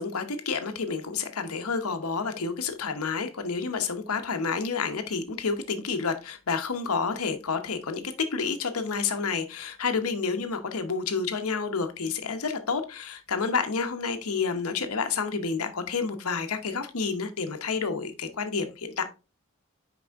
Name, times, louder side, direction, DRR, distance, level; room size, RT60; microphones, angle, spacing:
voice 1, 0.0-19.0, left 5 dB, 90° left, 0.9 m, -29 dB
6.0 x 4.8 x 3.5 m
head